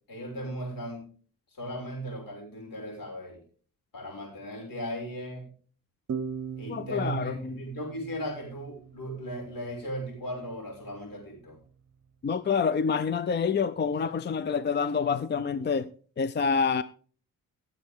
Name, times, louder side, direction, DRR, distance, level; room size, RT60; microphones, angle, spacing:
voice 1, 0.1-1.1 1.5-3.4 3.9-5.5 6.6-11.6, equal, 70° left, 5.9 m, -37 dB
sound 1, 6.1-9.5, right 6 dB, 50° right, 0.9 m, -39 dB
voice 2, 6.7-7.6 12.2-15.9 16.2-16.8, left 6 dB, 30° left, 0.5 m, -27 dB
16.5 x 7.3 x 3.6 m
cardioid pair, 105°, 35 cm